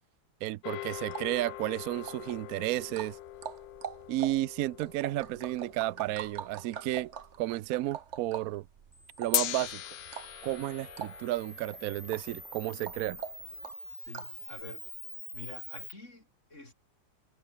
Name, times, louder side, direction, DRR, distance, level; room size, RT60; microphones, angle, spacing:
voice 1, 0.4-3.2 4.1-7.1 7.4-8.7 9.2-9.8 10.4-13.2, right 16 dB, 70° right, 0.8 m, -32 dB
sound 1, 0.6-7.1 9.3-13.8, left 16 dB, 80° left, 1.3 m, -40 dB
sound 2, 1.1-14.4, right 7 dB, 45° right, 1.2 m, -45 dB
Camera, 8.9-15.9, equal, 5° left, 1.0 m, -46 dB
voice 2, 14.1-14.8 15.3-16.7, left 2 dB, 40° left, 5.7 m, -47 dB
omnidirectional pair, 2.0 m